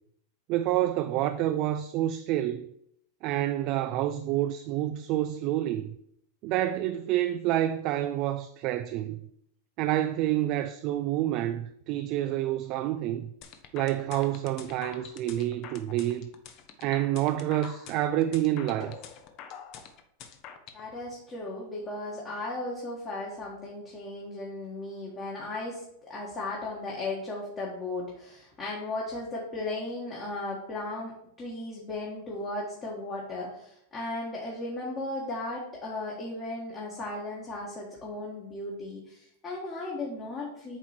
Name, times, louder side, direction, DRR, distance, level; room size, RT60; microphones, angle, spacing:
voice 1, 0.5-2.7 3.2-5.9 6.4-9.2 9.8-13.3 13.7-16.3 16.8-18.9, right 13 dB, 45° right, 0.3 m, -28 dB
sound 1, 13.4-20.8, left 8 dB, 45° left, 0.8 m, -45 dB
voice 2, 20.7-31.1 31.4-40.8, left 2 dB, 25° left, 1.5 m, -36 dB
8.0 x 3.0 x 4.4 m
supercardioid pair, 130°, 0 cm